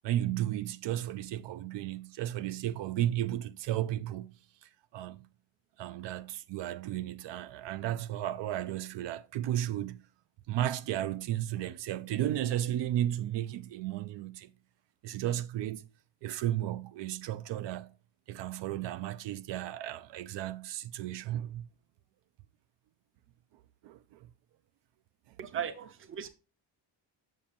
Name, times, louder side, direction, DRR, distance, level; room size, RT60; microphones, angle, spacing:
voice 1, 0.0-4.3 4.6-5.2 5.8-10.0 10.5-14.5 15.0-15.9 16.2-17.9 18.3-21.7 23.8-24.3 25.5-25.6, right 12 dB, 75° right, 0.5 m, -34 dB
voice 2, 25.4-26.3, right 9 dB, 30° right, 0.6 m, -37 dB
7.3 x 7.2 x 2.5 m
cardioid pair, 170°, 44 cm